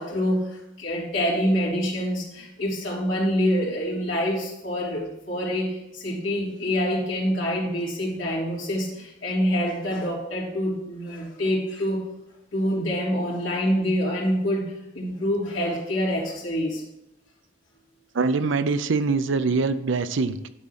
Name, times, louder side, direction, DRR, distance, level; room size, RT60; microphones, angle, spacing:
voice 1, 0.0-12.0 12.5-16.8, equal, 70° left, -6 dB, 3.2 m, -26 dB
voice 2, 18.1-20.5, right 4 dB, 70° right, 11 dB, 0.5 m, -23 dB
10.5 x 3.8 x 5.8 m, 0.89 s
head